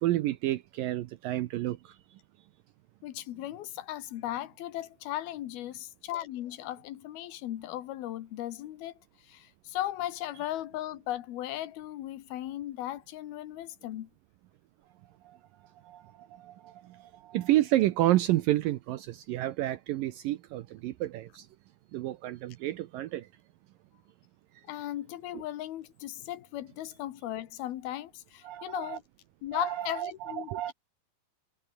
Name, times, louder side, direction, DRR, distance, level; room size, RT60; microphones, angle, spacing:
voice 1, 0.0-2.0 15.3-15.4 15.8-21.5 21.9-23.3 25.3-25.4 28.4-29.0 29.5-30.7, right 15 dB, 75° right, 2.3 m, -30 dB
voice 2, 3.0-8.9 9.3-14.1 24.7-29.0 29.4-30.7, left 13 dB, 75° left, 3.2 m, -37 dB
omnidirectional pair, 4.6 m